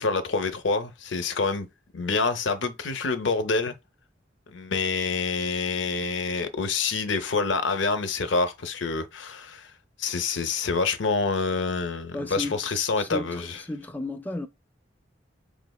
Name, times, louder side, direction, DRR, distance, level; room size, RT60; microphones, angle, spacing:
voice 1, 0.0-1.7 1.9-3.7 4.5-9.7 10.0-13.6, left 4 dB, 90° left, 0.7 m, -27 dB
voice 2, 12.1-14.5, left 1 dB, 10° left, 0.4 m, -34 dB
4.8 x 3.3 x 2.3 m
head